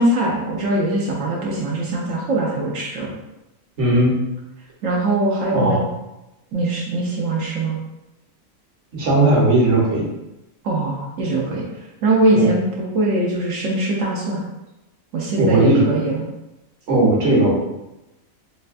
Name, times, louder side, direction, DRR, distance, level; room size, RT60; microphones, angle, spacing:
voice 1, 0.0-3.1 4.8-5.8 6.5-7.8 10.6-11.6 12.0-14.4 15.1-16.3, right 2 dB, 70° right, -4 dB, 1.0 m, -21 dB
voice 2, 3.8-4.2 5.5-5.8 8.9-10.0 12.3-12.5 15.3-15.9 16.9-17.5, right 2 dB, 55° right, -5 dB, 1.3 m, -16 dB
4.3 x 2.2 x 2.4 m, 0.95 s
omnidirectional pair, 1.4 m